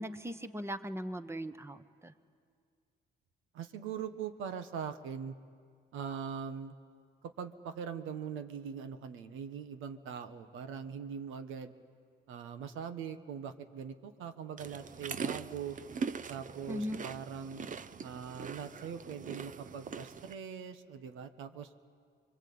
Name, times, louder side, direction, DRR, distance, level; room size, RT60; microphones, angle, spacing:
voice 1, 0.0-2.1 16.7-17.0, equal, 15° right, 11 dB, 1.2 m, -39 dB
voice 2, 3.5-5.3 5.9-6.7 7.4-11.7 12.3-15.8 16.3-17.6 18.0-21.8, right 7 dB, 90° right, 10 dB, 1.4 m, -42 dB
sound 1, 14.6-20.3, right 5 dB, 40° right, 0.8 m, -41 dB
25.0 x 23.0 x 8.7 m, 2.1 s
cardioid pair, 90°, 20 cm